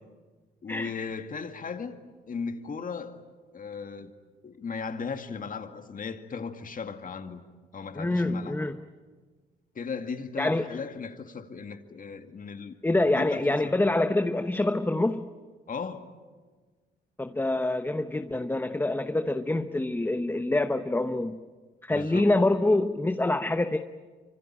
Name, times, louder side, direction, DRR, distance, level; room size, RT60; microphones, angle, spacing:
voice 1, 0.6-2.0 2.3-3.2 3.5-4.1 4.4-7.4 7.7-8.6 9.8-13.9 15.7-16.0 21.9-22.3, left 5 dB, 45° left, 2.1 m, -37 dB
voice 2, 8.0-8.8 10.4-10.6 12.8-15.3 17.2-21.4 21.8-23.8, left 2 dB, 10° left, 1.0 m, -26 dB
25.5 x 25.0 x 8.9 m
cardioid pair, 90°, 20 cm